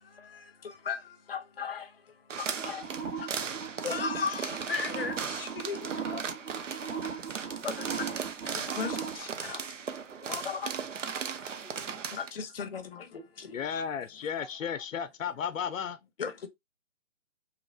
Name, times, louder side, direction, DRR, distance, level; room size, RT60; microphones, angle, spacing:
voice 1, 0.0-2.9 3.2-6.2 6.7-7.0 7.6-8.1 8.5-9.6 10.3-10.7 11.8-13.6 16.2-16.5, left 6 dB, 50° left, 0.7 m, -37 dB
sound 1, 2.3-12.3, right 6 dB, 75° right, 0.6 m, -37 dB
sound 2, 2.6-9.2, right 6 dB, 55° right, 2.0 m, -38 dB
voice 2, 6.1-8.2 10.2-10.5 11.0-12.2 14.4-14.8, right 1 dB, 5° left, 0.8 m, -55 dB
voice 3, 13.5-16.0, left 7 dB, 90° left, 0.5 m, -34 dB
3.0 x 2.9 x 2.4 m
hypercardioid pair, 155°, 38 cm